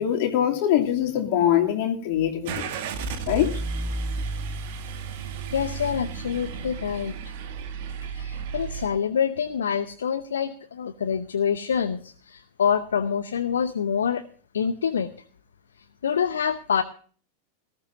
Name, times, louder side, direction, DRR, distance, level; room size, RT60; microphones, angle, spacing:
voice 1, 0.0-2.6 3.3-3.6, left 11 dB, 50° left, 2.8 m, -23 dB
Car / Engine starting, 2.4-8.9, right 4 dB, 50° right, 2.0 m, -32 dB
voice 2, 5.5-7.1 8.1-14.2 14.5-15.1 16.0-16.8, left 7 dB, 65° left, 0.8 m, -26 dB
18.5 x 15.0 x 2.6 m
figure-of-eight pair, 90°, 0 cm